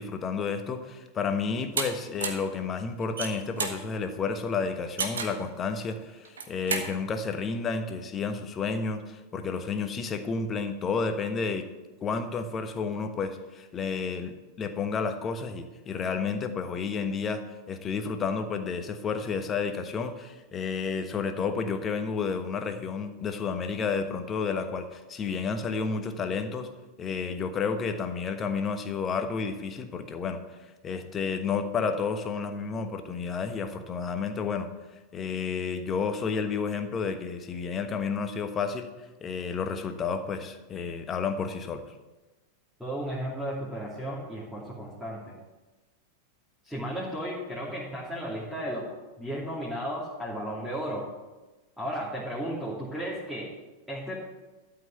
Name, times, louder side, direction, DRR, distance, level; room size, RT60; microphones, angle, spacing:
voice 1, 0.0-11.7 12.0-17.4 17.7-26.7 27.0-34.7 35.1-38.9 39.2-41.8, left 5 dB, 25° left, 8 dB, 1.2 m, -31 dB
sound 1, 1.8-1.9 2.2-2.5 3.0-3.8 5.0-5.4 6.2-6.9, right 5 dB, 65° right, 1.4 m, -30 dB
voice 2, 42.8-45.3 46.6-48.9 49.2-51.0 51.8-53.5 53.9-54.2, equal, ahead, -8 dB, 2.9 m, -34 dB
12.5 x 5.9 x 8.1 m, 1.2 s
figure-of-eight pair, 90°, 0 cm